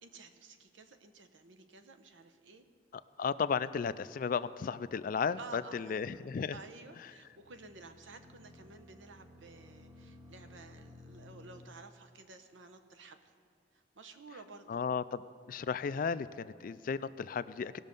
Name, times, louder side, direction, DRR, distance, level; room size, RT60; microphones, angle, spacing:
voice 1, 0.0-2.6 5.4-6.0 6.5-13.3 13.7-14.8, right 3 dB, 90° right, 8 dB, 0.9 m, -53 dB
voice 2, 3.2-6.6 14.7-15.2 15.5-17.8, left 6 dB, 45° left, 15 dB, 0.3 m, -34 dB
sound 1, 7.2-11.7, left 2 dB, 20° right, 1.0 m, -56 dB
18.5 x 6.4 x 5.3 m, 2.3 s
head